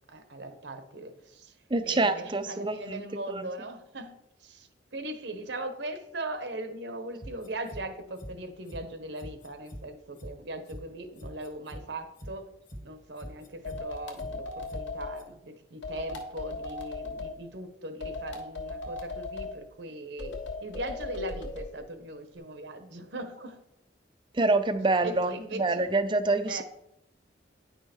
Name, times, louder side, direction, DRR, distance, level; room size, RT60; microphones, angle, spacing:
voice 1, 0.1-1.6 1.8-12.5 12.8-23.6 25.0-25.9 26.4-26.6, right 1 dB, 70° right, 8 dB, 1.1 m, -39 dB
voice 2, 1.7-3.0 3.3-3.4 24.3-25.3 25.6-26.6, right 3 dB, 25° right, 10 dB, 0.5 m, -26 dB
sound 1, 7.2-7.8 8.2-8.3 8.7-8.8 9.2-9.8 10.2-10.3 10.7-10.8 11.2-11.8 12.2-12.3 12.7-12.8 13.2-13.8 14.2-14.3 14.7-14.8 15.2-15.3, equal, 45° left, 1.7 m, -42 dB
sound 2, 13.6-15.2 15.8-17.3 18.0-19.5 20.2-21.7, left 3 dB, 75° left, 1.4 m, -37 dB
9.7 x 5.6 x 4.4 m, 0.79 s
head